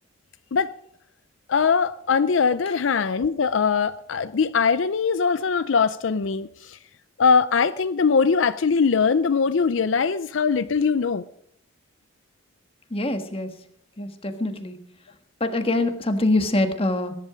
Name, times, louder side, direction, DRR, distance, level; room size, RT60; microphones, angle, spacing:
voice 1, 1.5-6.8 7.2-11.2, left 5 dB, 75° left, 13 dB, 0.5 m, -21 dB
voice 2, 12.9-13.6 14.0-14.8 15.4-17.2, left 2 dB, 30° left, 7 dB, 1.5 m, -24 dB
19.0 x 10.5 x 5.1 m, 0.70 s
head